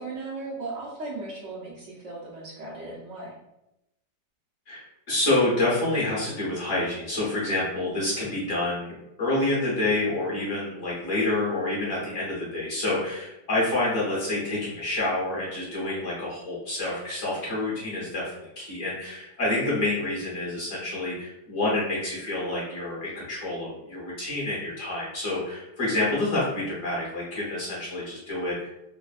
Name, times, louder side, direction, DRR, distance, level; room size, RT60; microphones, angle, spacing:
voice 1, 0.0-3.4, right 3 dB, 60° right, -5 dB, 0.8 m, -37 dB
voice 2, 4.7-28.7, left 2 dB, 50° left, -6 dB, 1.2 m, -28 dB
3.3 x 2.0 x 2.3 m, 0.88 s
omnidirectional pair, 1.8 m